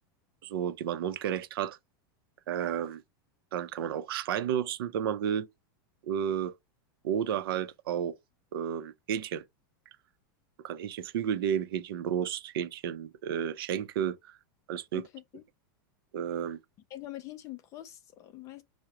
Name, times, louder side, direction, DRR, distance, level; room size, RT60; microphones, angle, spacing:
voice 1, 0.4-1.8 2.5-3.0 3.5-5.5 6.0-6.5 7.0-8.2 8.5-9.4 10.6-14.4 14.7-15.0 16.1-16.6, right 9 dB, 85° right, 0.5 m, -32 dB
voice 2, 14.9-15.4 16.9-18.6, left 15 dB, 25° left, 0.4 m, -44 dB
4.7 x 2.1 x 2.8 m
supercardioid pair, 165°, 12 cm